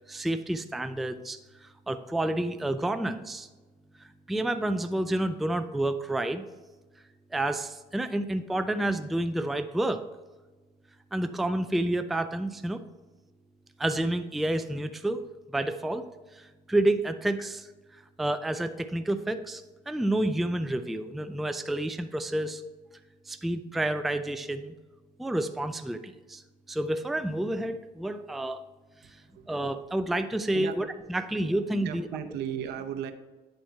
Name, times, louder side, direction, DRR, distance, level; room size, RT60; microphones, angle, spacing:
voice 1, 0.1-3.5 4.0-6.4 7.3-10.1 11.1-12.8 13.8-22.6 23.3-24.8 25.2-26.4 26.7-28.6 29.0-29.2 29.5-32.1, right 1 dB, ahead, 9 dB, 0.3 m, -30 dB
voice 2, 29.0-29.5 30.5-30.8 31.5-33.1, right 9 dB, 80° right, 8 dB, 0.7 m, -36 dB
9.1 x 4.3 x 4.5 m, 1.2 s
cardioid pair, 110°, 17 cm